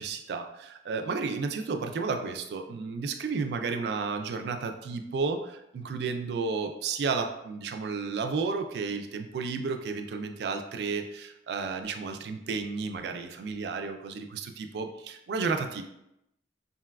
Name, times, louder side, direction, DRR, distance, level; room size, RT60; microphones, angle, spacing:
voice 1, 0.0-15.8, right 4 dB, 65° right, 6 dB, 0.3 m, -32 dB
3.9 x 2.2 x 2.2 m, 0.84 s
head